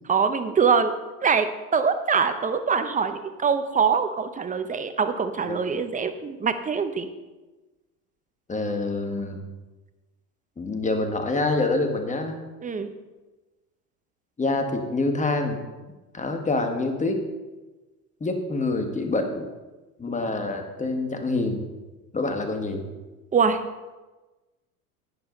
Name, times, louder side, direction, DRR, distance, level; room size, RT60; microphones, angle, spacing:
voice 1, 0.1-0.9 1.2-1.5 1.7-7.1 12.6-12.9 23.3-23.6, right 6 dB, 15° right, 9 dB, 0.9 m, -23 dB
voice 2, 8.5-9.4 10.6-12.4 14.4-15.6 16.1-17.2 18.2-19.4 20.0-21.6 22.1-22.8, left 2 dB, 15° left, 5 dB, 1.6 m, -26 dB
11.5 x 9.2 x 4.0 m, 1.2 s
hypercardioid pair, 85°, 46 cm